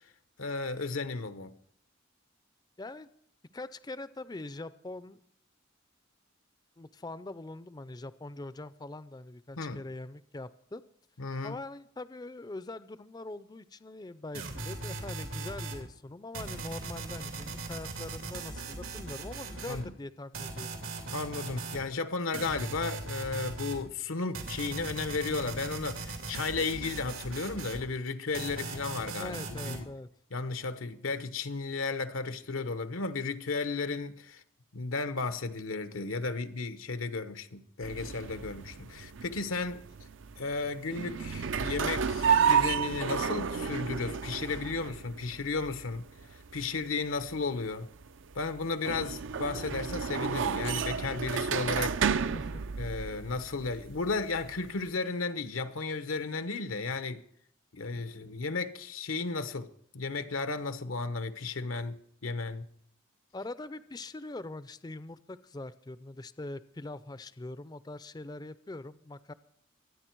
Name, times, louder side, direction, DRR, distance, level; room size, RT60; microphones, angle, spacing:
voice 1, 0.4-1.5 9.6-9.8 11.2-11.6 19.7-19.9 21.1-29.8 30.3-34.4 34.7-39.8 40.4-46.0 46.5-47.9 48.3-52.3 52.8-57.2 57.7-59.7 59.9-62.7, left 3 dB, 85° left, 1.0 m, -34 dB
voice 2, 2.8-3.1 3.5-5.2 6.8-10.8 11.4-20.8 29.2-30.1 52.3-52.6 63.3-69.3, left 2 dB, 20° left, 0.5 m, -42 dB
sound 1, 14.3-15.8 16.3-19.8 20.3-21.8 22.3-23.8 24.3-27.8 28.3-29.8, right 3 dB, 90° right, 2.8 m, -39 dB
sound 2, 37.8-54.9, right 7 dB, 65° right, 0.5 m, -32 dB
23.5 x 9.4 x 4.6 m
head